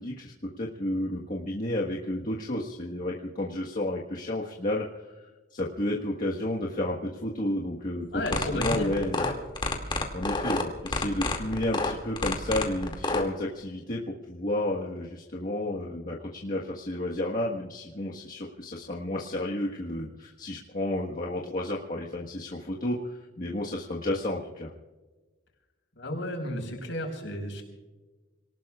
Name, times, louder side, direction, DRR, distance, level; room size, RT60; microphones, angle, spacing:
voice 1, 0.0-5.1 5.5-9.2 10.1-24.7, left 1 dB, 45° left, -3 dB, 1.5 m, -31 dB
voice 2, 8.1-9.3 26.0-27.6, left 1 dB, 65° left, 2 dB, 5.1 m, -33 dB
sound 1, 8.2-13.2, left 2 dB, 25° left, 2.4 m, -28 dB
28.0 x 19.0 x 2.4 m, 1.2 s
head